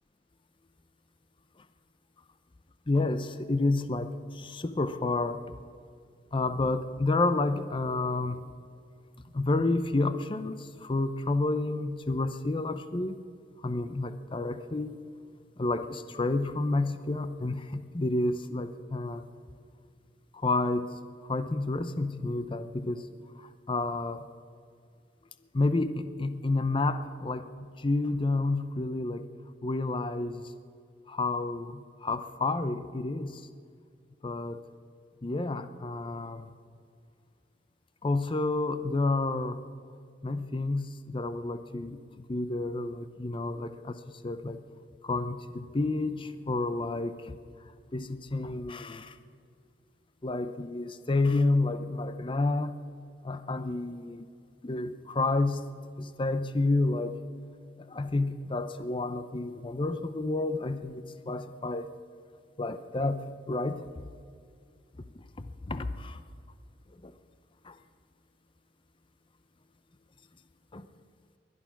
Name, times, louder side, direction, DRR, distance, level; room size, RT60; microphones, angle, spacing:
voice 1, 2.9-5.4 6.3-8.4 9.3-13.2 13.6-15.1 15.6-19.3 20.3-20.9 21.3-23.0 23.4-24.2 25.5-29.3 29.6-30.5 31.1-33.5 34.2-34.6 35.2-36.5 38.0-39.6 40.2-42.0 42.3-44.6 45.0-47.4 47.9-49.2 50.2-52.8 53.2-54.3 54.6-55.6 56.0-57.2 57.9-61.9 62.6-63.9 65.4-66.2 67.0-67.1 67.6-67.8 70.7-70.9, left 2 dB, 30° left, 11 dB, 0.6 m, -30 dB
21.5 x 11.0 x 5.9 m, 2.3 s
head